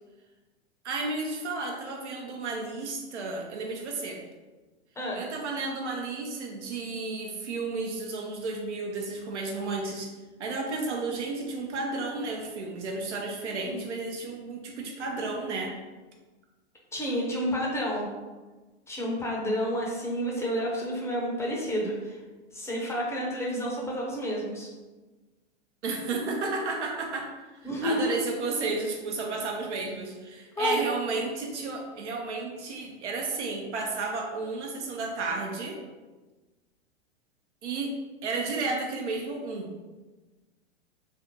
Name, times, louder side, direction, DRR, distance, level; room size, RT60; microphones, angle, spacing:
voice 1, 0.8-4.2 5.1-10.1 10.4-15.7 25.8-35.8 37.6-37.9 38.2-39.7, right 3 dB, 75° right, 1 dB, 0.7 m, -32 dB
voice 2, 16.9-18.1 18.9-22.2 22.5-24.7 27.6-28.2 30.6-30.8, equal, 10° left, -3 dB, 0.6 m, -30 dB
3.4 x 2.4 x 2.8 m, 1.2 s
hypercardioid pair, 105°, 35 cm